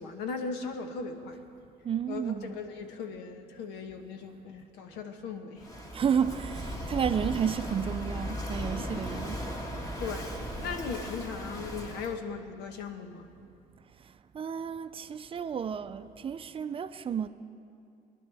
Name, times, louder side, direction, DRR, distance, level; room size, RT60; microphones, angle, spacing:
voice 1, 0.0-1.4 2.1-5.7 10.0-13.3, left 5 dB, 90° left, 1.2 m, -38 dB
voice 2, 1.8-2.6 5.9-9.4 14.3-17.3, right 7 dB, 35° right, 0.5 m, -31 dB
Walk footsteps / Wind / Waves surf, 5.6-12.2, equal, 20° left, 1.6 m, -37 dB
22.5 x 10.5 x 3.5 m
cardioid pair, 110°, 17 cm